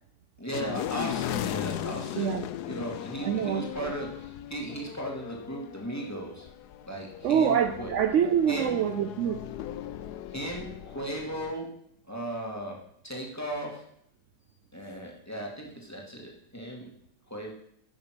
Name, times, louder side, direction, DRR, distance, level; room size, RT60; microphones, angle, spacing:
voice 1, 0.4-2.3 2.7-6.5 6.9-7.9 8.5-8.8 10.3-11.7 12.1-12.8 13.0-13.8 14.7-16.9 17.3-17.5, right 1 dB, 10° left, -1 dB, 2.2 m, -36 dB
sound 1, 0.5-11.5, left 11 dB, 70° left, 1.1 m, -37 dB
voice 2, 3.2-3.9 7.2-9.4, right 8 dB, 80° right, 9 dB, 0.6 m, -26 dB
10.5 x 6.6 x 6.1 m, 0.70 s
omnidirectional pair, 1.9 m